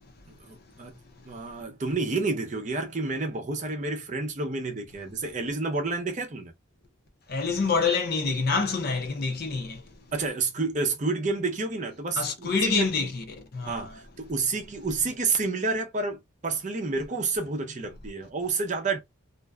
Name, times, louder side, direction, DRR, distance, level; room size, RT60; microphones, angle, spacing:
voice 1, 0.3-1.0 1.2-6.5 10.1-12.9 13.6-19.0, right 3 dB, 35° right, 0.6 m, -29 dB
voice 2, 7.3-9.9 12.2-14.0, left 4 dB, 45° left, 0.5 m, -27 dB
2.5 x 2.2 x 2.2 m
head